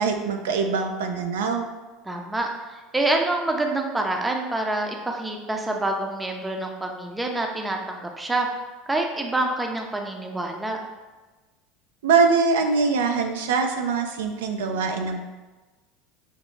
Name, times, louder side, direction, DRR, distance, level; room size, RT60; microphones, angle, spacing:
voice 1, 0.0-1.6 12.0-15.2, right 5 dB, 90° right, 4 dB, 0.4 m, -23 dB
voice 2, 2.1-8.5 8.9-10.8, right 2 dB, 10° right, 2 dB, 0.5 m, -27 dB
5.6 x 2.0 x 3.1 m, 1.2 s
supercardioid pair, 105°, 0 cm